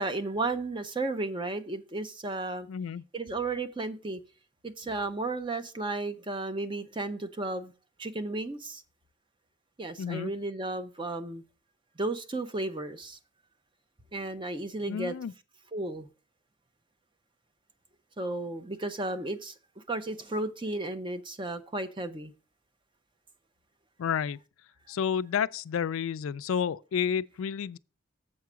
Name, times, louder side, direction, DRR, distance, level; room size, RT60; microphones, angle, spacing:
voice 1, 0.0-2.7 3.1-4.2 4.6-7.7 8.0-8.8 9.8-11.4 12.0-13.2 14.1-15.1 15.7-16.1 18.2-22.3, right 2 dB, 25° right, 0.6 m, -33 dB
voice 2, 2.7-3.0 10.0-10.3 14.9-15.3 24.0-24.4 24.9-27.8, left 7 dB, 80° left, 0.3 m, -30 dB
7.5 x 4.7 x 6.0 m
head